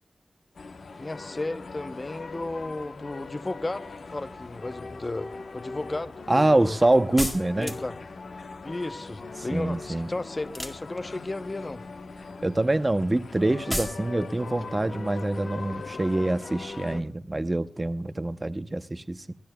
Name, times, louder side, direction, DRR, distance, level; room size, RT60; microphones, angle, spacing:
sound 1, 0.5-17.0, left 4 dB, 75° left, 0.9 m, -40 dB
voice 1, 1.0-6.8 7.6-8.0 8.6-11.8, left 2 dB, 30° left, 0.7 m, -34 dB
voice 2, 6.3-7.7 9.5-10.1 12.4-19.4, right 2 dB, 25° right, 0.7 m, -25 dB
sound 2, 7.2-8.1 10.4-11.3 13.7-14.0, left 1 dB, 15° left, 1.9 m, -32 dB
24.0 x 15.5 x 2.2 m
wide cardioid pair, 70°, 0 cm